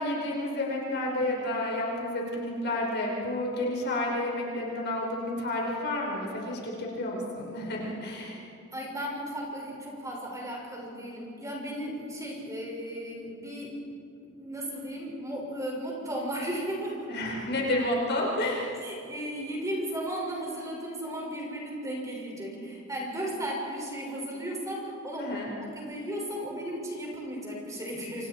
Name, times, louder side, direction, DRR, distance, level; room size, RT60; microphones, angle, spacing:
voice 1, 0.0-8.4 17.1-18.8 25.2-25.5, left 1 dB, 55° left, -2 dB, 5.2 m, -30 dB
voice 2, 8.7-13.7 14.2-17.1 18.8-25.3 25.6-28.3, right 1 dB, 15° right, -3 dB, 6.2 m, -35 dB
28.0 x 27.5 x 4.7 m, 2.5 s
head